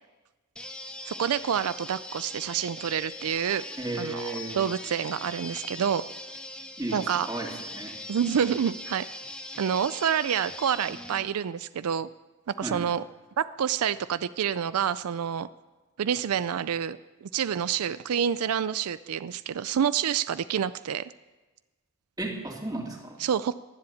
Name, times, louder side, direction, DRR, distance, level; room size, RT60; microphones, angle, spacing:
sound 1, 0.6-11.2, left 1 dB, 5° left, 0.8 m, -41 dB
voice 1, 1.1-3.6 4.0-6.0 6.9-7.3 8.1-9.1 9.6-12.1 12.5-13.0 13.4-15.5 16.0-21.1 23.2-23.5, right 8 dB, 85° right, 15 dB, 0.4 m, -28 dB
voice 2, 3.8-4.6 6.8-7.0 7.3-7.9 12.6-12.8 22.2-23.2, right 2 dB, 20° right, 0 dB, 2.6 m, -34 dB
21.5 x 7.8 x 8.4 m, 1.2 s
head